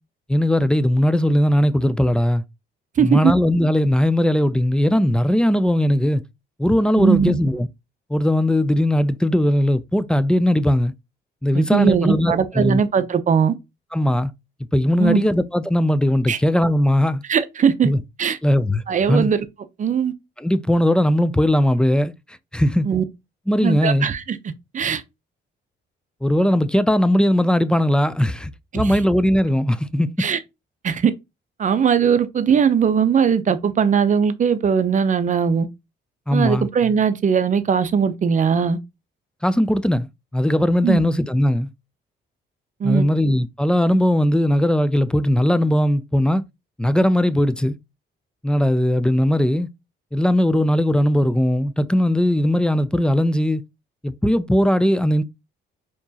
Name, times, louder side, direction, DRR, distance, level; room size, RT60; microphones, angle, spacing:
voice 1, 0.3-2.4 3.0-6.2 6.6-7.7 8.1-10.9 11.4-12.8 13.9-14.3 14.7-17.2 17.8-18.0 18.4-18.8 19.1-19.3 20.4-22.9 23.5-24.1 26.2-30.3 36.3-36.7 39.4-41.7 42.8-46.4 46.8-47.8 48.4-49.7 50.1-53.6 54.0-55.2, equal, 5° left, 0.3 m, -19 dB
voice 2, 3.0-3.3 7.0-7.4 11.5-13.5 15.0-15.2 16.3-16.4 17.3-17.9 18.2-18.4 18.9-19.4 19.8-20.1 22.8-23.0 23.6-24.4 24.7-25.0 28.7-29.0 30.2-30.4 30.8-31.1 31.6-35.7 36.3-38.8 40.8-41.0 42.8-43.0, right 7 dB, 40° right, 0.6 m, -19 dB
4.4 x 3.0 x 2.7 m
cardioid pair, 90°, 20 cm